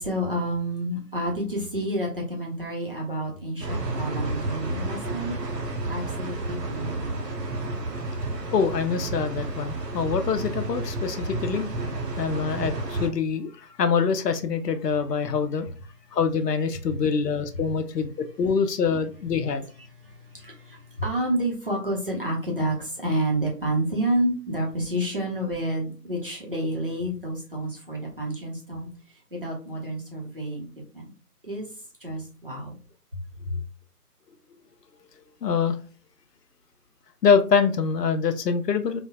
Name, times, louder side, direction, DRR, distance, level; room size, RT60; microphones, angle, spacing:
voice 1, 0.0-5.4 5.9-7.5 18.4-18.5 19.8-30.7 30.9-31.1 31.4-31.7 32.0-32.8 33.1-33.6, right 1 dB, 35° right, 0.7 m, -29 dB
sound 1, 3.6-13.1, right 2 dB, 80° right, 0.8 m, -31 dB
voice 2, 8.5-11.7 12.2-13.5 13.8-15.7 16.1-19.7 35.4-35.8 37.2-39.0, left 6 dB, 85° left, 0.6 m, -24 dB
3.2 x 2.1 x 2.2 m
figure-of-eight pair, 165°, 47 cm